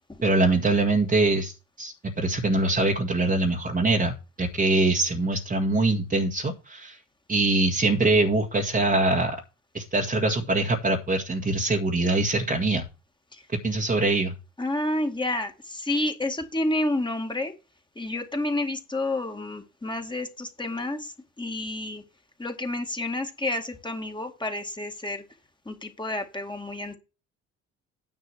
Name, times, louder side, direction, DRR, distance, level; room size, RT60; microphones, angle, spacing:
voice 1, 0.2-7.0 7.3-9.4 9.7-12.8 13.6-14.3, right 2 dB, 20° right, -1 dB, 1.8 m, -23 dB
voice 2, 14.6-17.5 18.0-22.0 22.4-25.2 25.7-27.0, left 1 dB, 10° left, 5 dB, 2.1 m, -30 dB
10.0 x 5.6 x 4.5 m, 0.31 s
figure-of-eight pair, 50°, 38 cm